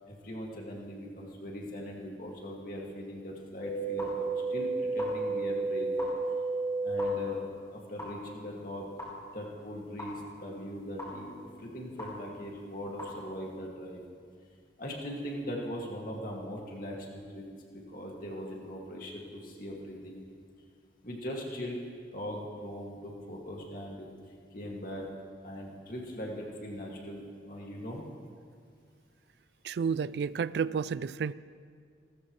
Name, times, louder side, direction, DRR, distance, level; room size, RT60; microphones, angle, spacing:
voice 1, 0.1-5.9 6.8-7.4 7.7-8.9 9.3-14.0 14.8-20.3 21.0-21.8 22.1-24.1 24.5-25.1 25.4-28.1, equal, 50° left, -2 dB, 2.3 m, -40 dB
sound 1, 3.6-7.0 8.0-8.1 9.0-9.1 10.0-10.1 11.0-11.1 12.0-12.1 13.0-13.1, right 3 dB, 15° left, 4.1 m, -32 dB
voice 2, 29.6-31.3, right 6 dB, 65° right, 17 dB, 0.3 m, -31 dB
27.0 x 13.5 x 3.3 m, 2.1 s
head